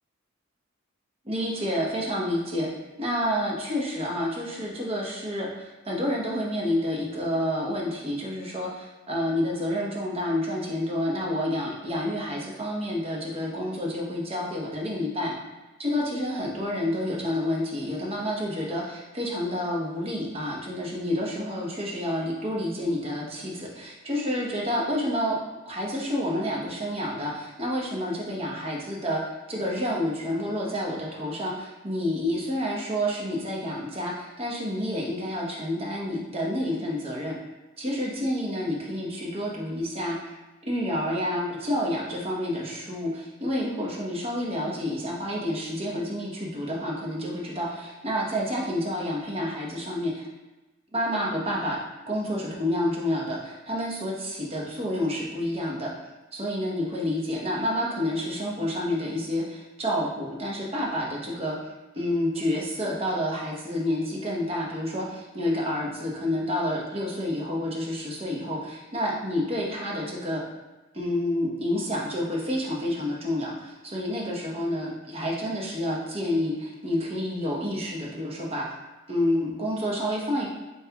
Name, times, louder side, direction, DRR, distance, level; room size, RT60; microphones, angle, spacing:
voice 1, 1.2-2.7 3.0-15.3 15.8-25.4 25.7-29.2 29.5-37.4 37.8-40.4 40.6-50.3 50.9-51.8 52.1-55.9 56.3-61.5 61.9-70.4 70.9-78.7 79.1-80.5, left 1 dB, 30° right, -3 dB, 0.9 m, -29 dB
7.2 x 2.9 x 2.2 m, 1.1 s
head